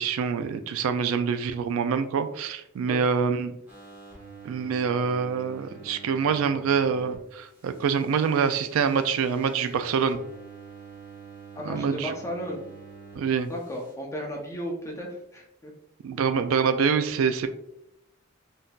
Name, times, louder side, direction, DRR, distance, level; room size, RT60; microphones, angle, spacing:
voice 1, 0.0-3.5 4.4-10.2 11.6-12.1 13.2-13.5 16.0-17.5, right 6 dB, 85° right, 10 dB, 0.3 m, -25 dB
voice 2, 2.9-3.3 11.6-12.6 13.5-15.7, equal, 15° left, -1 dB, 0.6 m, -35 dB
sound 1, 3.7-7.2 7.5-13.2 13.5-13.9, right 5 dB, 10° right, 1.1 m, -47 dB
3.6 x 2.7 x 2.3 m, 0.80 s
head